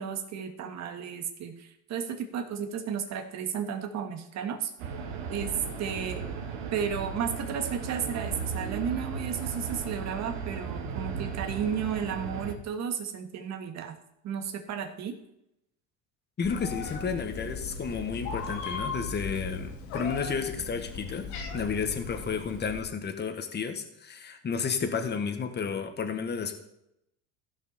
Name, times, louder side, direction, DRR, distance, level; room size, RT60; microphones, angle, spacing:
voice 1, 0.0-4.7 5.3-5.5 5.8-6.2 6.7-14.0 14.2-15.2, right 7 dB, 45° right, 5 dB, 1.8 m, -33 dB
sound 1, 4.8-12.5, right 5 dB, 75° right, 1.9 m, -36 dB
Meow, 16.4-22.8, left 4 dB, 75° left, 2.6 m, -37 dB
voice 2, 16.4-21.3 21.5-26.5, left 6 dB, 30° left, 6 dB, 1.6 m, -32 dB
15.5 x 5.8 x 4.4 m, 0.80 s
supercardioid pair, 105°, 36 cm